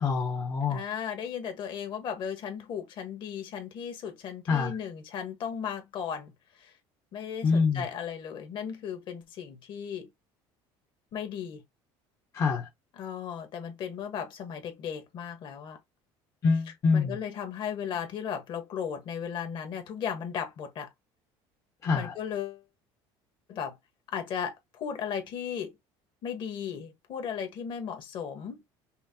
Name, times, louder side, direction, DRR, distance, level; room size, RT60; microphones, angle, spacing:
voice 1, 0.0-0.8 4.5-4.7 7.4-7.8 12.3-12.7 16.4-17.2 21.8-22.1, left 5 dB, 30° left, 0.7 m, -25 dB
voice 2, 0.7-6.3 6.6-6.7 7.1-10.1 11.1-11.6 12.9-15.8 16.5-20.9 21.9-22.6 23.5-23.8 24.1-25.8 26.2-28.6, left 8 dB, 45° left, 1.2 m, -36 dB
5.5 x 2.0 x 2.7 m
cardioid pair, 150°, 11 cm